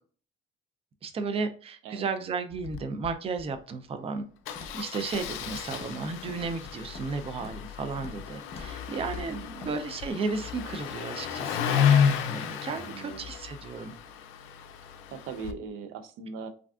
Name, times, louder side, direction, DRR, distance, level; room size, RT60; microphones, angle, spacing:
voice 1, 1.0-4.2 4.7-13.9, right 4 dB, 30° right, 9 dB, 0.4 m, -34 dB
Engine starting, 2.5-2.8 3.0-3.1 3.4-3.6 4.5-15.5, left 8 dB, 85° left, 0.4 m, -31 dB
Walk footsteps, 4.6-4.9 5.1-5.4 5.7-6.0 6.3-7.1 7.4-7.7 8.0-8.3 8.5-8.7 9.0-9.3 9.6-9.7, left 2 dB, 30° left, 0.7 m, -45 dB
voice 2, 9.3-9.8 12.7-13.3 15.1-16.5, right 5 dB, 90° right, 9 dB, 0.4 m, -40 dB
3.4 x 2.4 x 2.3 m, 0.43 s
cardioid pair, 100°, 20 cm